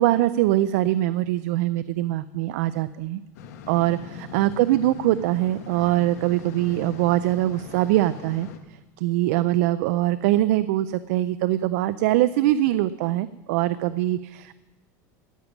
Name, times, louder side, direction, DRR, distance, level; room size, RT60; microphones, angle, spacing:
voice 1, 0.0-3.2 3.7-14.5, right 15 dB, 70° right, 14 dB, 0.4 m, -23 dB
sound 1, 3.3-8.6, left 6 dB, 90° left, 1.5 m, -41 dB
13.5 x 9.6 x 6.0 m, 1.1 s
supercardioid pair, 160°, 8 cm